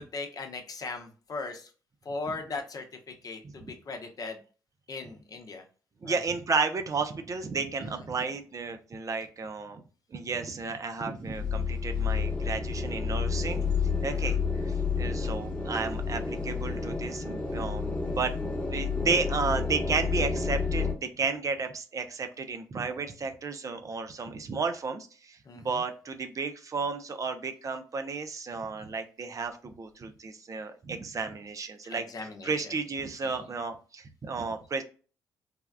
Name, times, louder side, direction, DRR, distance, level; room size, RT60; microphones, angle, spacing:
voice 1, 0.1-1.7 2.0-4.4 4.9-5.6 6.0-6.2 7.9-8.0 14.1-14.4 25.5-25.8 31.9-32.8 33.2-33.5, left 3 dB, 50° left, 5 dB, 0.7 m, -39 dB
voice 2, 6.0-9.8 10.1-13.6 14.0-14.4 14.6-18.3 18.7-32.0 32.4-34.8, right 4 dB, 40° right, 7 dB, 0.5 m, -33 dB
sound 1, 11.3-20.9, left 5 dB, 15° left, 1.0 m, -30 dB
3.4 x 2.3 x 2.2 m, 0.38 s
hypercardioid pair, 50°, 8 cm